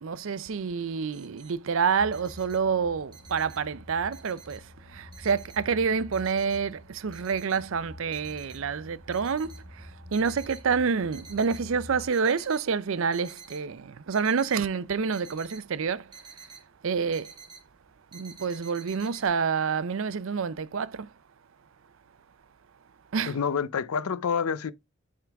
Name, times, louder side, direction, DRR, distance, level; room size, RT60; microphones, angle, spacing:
voice 1, 0.0-4.6 4.9-16.1 16.8-17.3 18.1-21.1 23.1-23.4, right 5 dB, 65° right, 0.5 m, -28 dB
sound 1, 0.6-0.7 0.9-1.6 1.9-3.7 4.1-4.9 5.1-6.8 7.1-7.7 8.1-8.7 9.1-10.7 11.0-11.7 12.0-12.7 13.0-13.6 14.1-16.6 16.9-17.7 18.1-19.3, right 5 dB, 20° right, 2.5 m, -49 dB
sound 2, 2.0-12.0, left 1 dB, 5° right, 4.0 m, -47 dB
voice 2, 23.3-24.7, left 6 dB, 85° left, 0.5 m, -28 dB
9.1 x 3.8 x 3.4 m
head